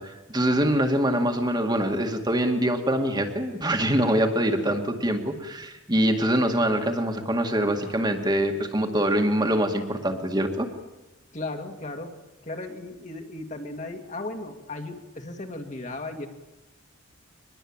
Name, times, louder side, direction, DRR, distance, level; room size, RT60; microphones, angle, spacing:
voice 1, 0.0-10.7, right 1 dB, 20° right, 4 dB, 2.0 m, -24 dB
voice 2, 11.3-12.1 12.4-16.3, left 2 dB, 35° left, 4 dB, 2.3 m, -36 dB
23.5 x 21.0 x 8.9 m, 1.1 s
head